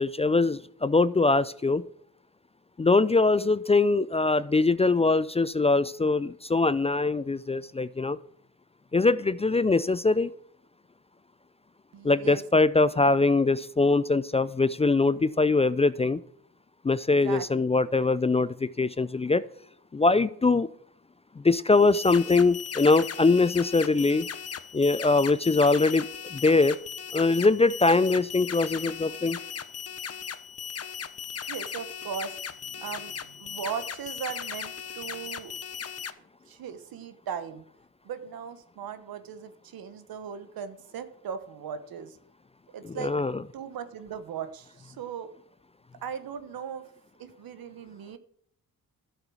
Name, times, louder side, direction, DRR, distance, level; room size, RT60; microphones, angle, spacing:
voice 1, 0.0-1.8 2.8-8.2 8.9-10.3 12.0-16.2 16.8-19.4 19.9-20.7 21.4-24.3 24.7-26.8 27.1-29.4 42.8-43.4, left 3 dB, 20° left, 17 dB, 0.4 m, -22 dB
voice 2, 11.9-12.4 15.0-15.4 17.2-17.6 31.5-35.6 36.5-37.6 38.0-42.2 42.7-43.1 43.5-45.3 46.0-46.8 47.2-48.2, right 7 dB, 75° right, 11 dB, 1.2 m, -38 dB
sound 1, 21.7-36.1, left 7 dB, 45° left, 0.9 m, -38 dB
11.5 x 7.9 x 6.3 m, 0.68 s
cardioid pair, 65°, 36 cm